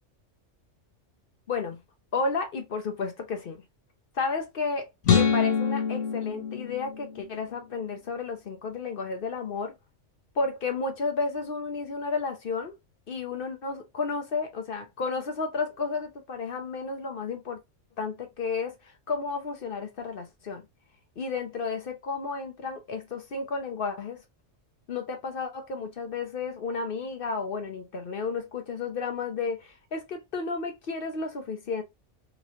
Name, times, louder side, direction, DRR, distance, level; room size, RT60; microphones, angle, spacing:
voice 1, 1.5-1.8 2.1-3.6 4.1-9.7 10.3-12.7 13.1-17.6 18.0-20.6 21.2-24.2 24.9-31.8, left 4 dB, 55° left, 0.8 m, -32 dB
sound 1, 5.0-7.4, left 6 dB, 75° left, 1.1 m, -25 dB
3.0 x 2.9 x 2.7 m
omnidirectional pair, 1.3 m